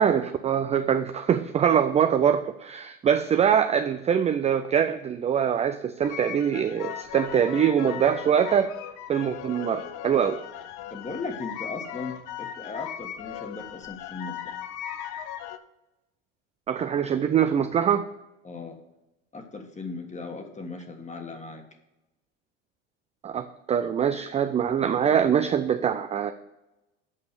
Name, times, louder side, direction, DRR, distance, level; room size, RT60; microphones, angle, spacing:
voice 1, 0.0-8.7 9.1-10.4 16.7-18.1 23.2-26.3, right 8 dB, 20° right, 9 dB, 0.3 m, -23 dB
sound 1, 6.0-15.6, left 10 dB, 50° left, 0.8 m, -38 dB
voice 2, 10.9-14.5 18.4-18.8 19.3-21.6, left 3 dB, 20° left, 6 dB, 1.5 m, -37 dB
8.5 x 5.3 x 6.8 m, 0.95 s
supercardioid pair, 100°, 39 cm